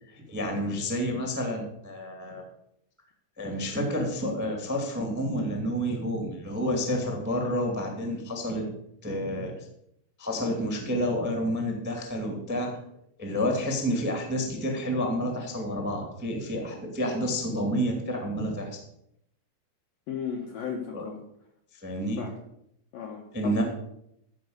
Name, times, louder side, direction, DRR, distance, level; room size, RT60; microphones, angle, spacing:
voice 1, 0.2-2.4 3.4-8.7 9.0-9.5 10.2-12.7 13.2-18.8 20.9-21.1 21.8-22.2 23.3-23.6, equal, 10° right, 2 dB, 0.4 m, -29 dB
voice 2, 20.1-21.2 22.2-22.3 22.9-23.6, left 7 dB, 75° left, 1 dB, 2.0 m, -35 dB
14.5 x 5.3 x 8.1 m, 0.76 s
omnidirectional pair, 5.8 m